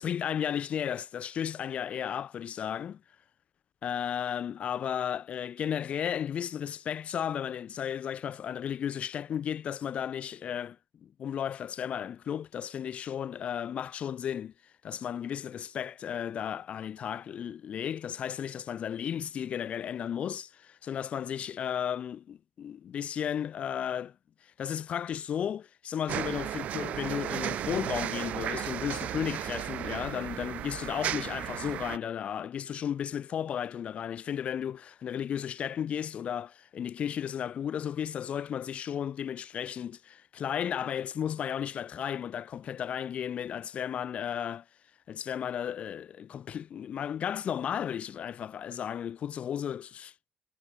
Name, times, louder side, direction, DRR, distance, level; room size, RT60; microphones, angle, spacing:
voice 1, 0.0-3.0 3.8-10.8 11.0-14.5 14.8-24.1 24.6-44.6 45.1-50.1, left 9 dB, 60° left, 7.3 m, -34 dB
sound 1, 26.1-32.0, right 11 dB, 75° right, 2.9 m, -34 dB
cardioid pair, 110°, 2 cm